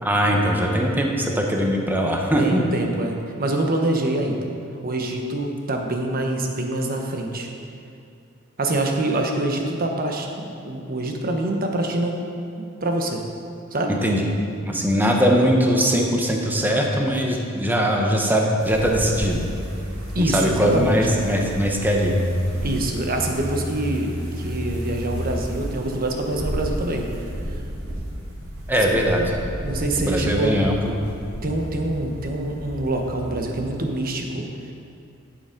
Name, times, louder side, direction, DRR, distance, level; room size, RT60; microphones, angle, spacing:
voice 1, 0.0-2.6 14.0-14.3 14.6-19.5 20.2-22.2 28.7-29.4 30.0-31.0, equal, 10° right, 0 dB, 0.9 m, -21 dB
voice 2, 2.4-4.5 4.8-7.5 8.6-12.2 12.6-13.2 13.7-14.0 20.1-21.0 22.6-27.1 29.6-30.6 31.4-34.5, right 1 dB, 45° right, 2 dB, 1.1 m, -25 dB
sound 1, 18.6-34.1, equal, 90° right, 2.4 m, -31 dB
11.0 x 7.0 x 5.2 m, 2.5 s
head